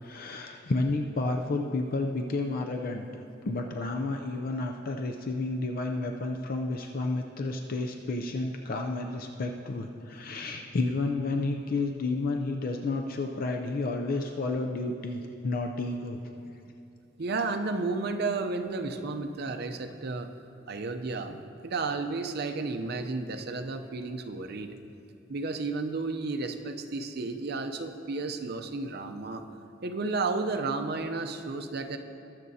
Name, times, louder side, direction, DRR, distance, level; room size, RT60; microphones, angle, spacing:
voice 1, 0.0-3.1 3.4-16.2, left 2 dB, 50° left, 3 dB, 0.5 m, -31 dB
voice 2, 17.2-20.3 20.7-24.7 25.3-29.4 29.8-32.0, right 3 dB, 55° right, 6 dB, 0.6 m, -32 dB
21.0 x 7.5 x 2.8 m, 2.5 s
head